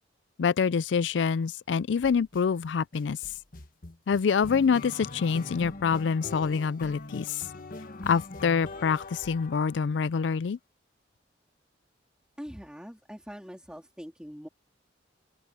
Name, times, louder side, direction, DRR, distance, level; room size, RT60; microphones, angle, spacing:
voice 1, 0.4-3.2 4.1-7.5 8.1-10.6, left 6 dB, 75° left, 0.4 m, -26 dB
sound 1, 2.0-2.4 2.9-10.1, left 3 dB, 50° left, 1.2 m, -42 dB
voice 2, 12.4-14.5, equal, 5° right, 2.6 m, -43 dB
open air
head